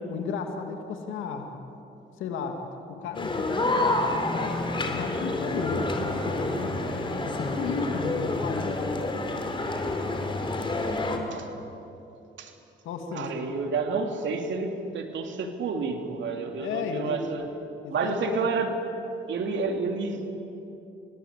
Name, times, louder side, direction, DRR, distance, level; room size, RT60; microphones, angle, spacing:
voice 1, 0.1-1.5 2.2-2.6 2.9-6.8 7.2-9.0 12.8-13.4 16.6-17.3 17.8-18.5, left 5 dB, 90° left, 4 dB, 2.5 m, -34 dB
sound 1, 3.1-11.2, left 2 dB, 25° left, 3.7 m, -28 dB
voice 2, 13.1-17.5 17.9-18.7 19.3-20.3, right 4 dB, 70° right, 4 dB, 2.9 m, -30 dB
30.0 x 19.5 x 8.3 m, 2.9 s
cardioid pair, 90°, 20 cm